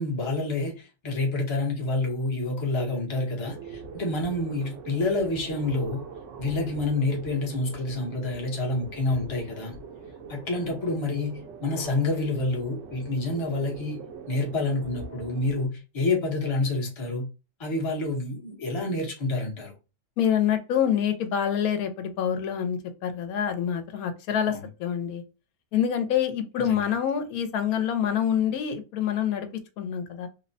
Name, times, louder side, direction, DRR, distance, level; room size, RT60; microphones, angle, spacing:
voice 1, 0.0-6.0 6.4-9.7 10.3-14.0 14.3-17.3 17.6-19.7 24.5-24.7 26.6-26.9, left 2 dB, 30° left, 0.6 m, -28 dB
sound 1, 3.5-15.7, right 5 dB, 65° right, 0.9 m, -42 dB
voice 2, 20.2-25.2 25.7-29.5 29.8-30.3, left 9 dB, 80° left, 1.0 m, -26 dB
3.0 x 2.0 x 2.6 m
omnidirectional pair, 1.5 m